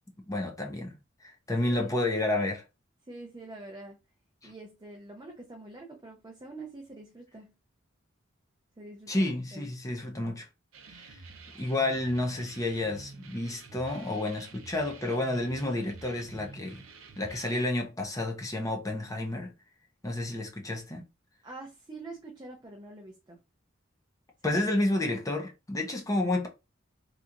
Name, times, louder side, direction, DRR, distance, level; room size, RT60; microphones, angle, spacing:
voice 1, 0.3-2.6 4.4-4.5 9.1-10.5 10.9-11.2 11.5-16.8 17.2-19.5 20.0-21.1 24.4-26.5, left 2 dB, 15° left, 0.7 m, -30 dB
voice 2, 3.0-4.0 4.4-7.6 8.8-9.7 21.4-23.4 24.4-24.9, right 2 dB, 20° right, 0.5 m, -45 dB
sound 1, 10.7-17.6, right 3 dB, 90° right, 0.6 m, -49 dB
3.3 x 2.9 x 2.5 m
head